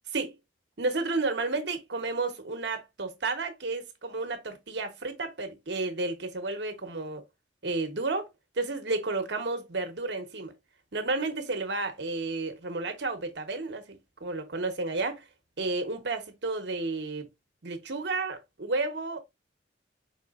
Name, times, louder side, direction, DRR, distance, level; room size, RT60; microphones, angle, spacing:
voice 1, 0.8-7.2 7.6-8.3 8.6-10.5 10.9-15.2 15.6-17.3 17.6-19.2, right 3 dB, 65° right, 1.0 m, -32 dB
4.7 x 3.7 x 2.4 m
head